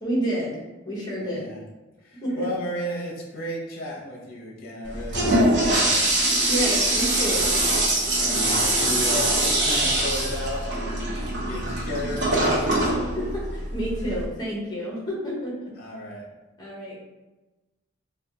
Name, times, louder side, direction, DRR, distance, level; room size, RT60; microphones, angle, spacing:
voice 1, 0.0-0.6 0.8-1.4 2.2-2.5 6.5-7.5 13.1-15.7 16.6-17.1, equal, 20° left, -4 dB, 0.8 m, -29 dB
voice 2, 1.2-1.6 2.0-6.1 8.2-11.1 11.4-12.9 15.8-16.3, left 1 dB, 45° left, -3 dB, 0.7 m, -33 dB
Toilet flush, 4.9-14.3, right 1 dB, 60° right, 0.8 m, -23 dB
3.3 x 2.3 x 2.7 m, 1.1 s
head